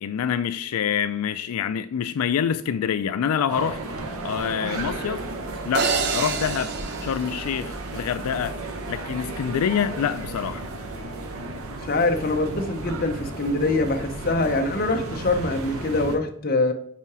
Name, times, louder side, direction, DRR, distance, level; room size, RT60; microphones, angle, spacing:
voice 1, 0.0-3.8 4.2-5.2 5.6-6.7 7.0-8.6 8.9-10.6, left 8 dB, 85° left, 0.3 m, -26 dB
sound 1, 3.5-16.2, right 2 dB, 80° right, 1.0 m, -34 dB
sound 2, 5.7-8.1, right 4 dB, 50° right, 0.6 m, -28 dB
voice 2, 11.9-16.7, left 2 dB, 40° left, 0.7 m, -24 dB
5.7 x 4.8 x 4.7 m
head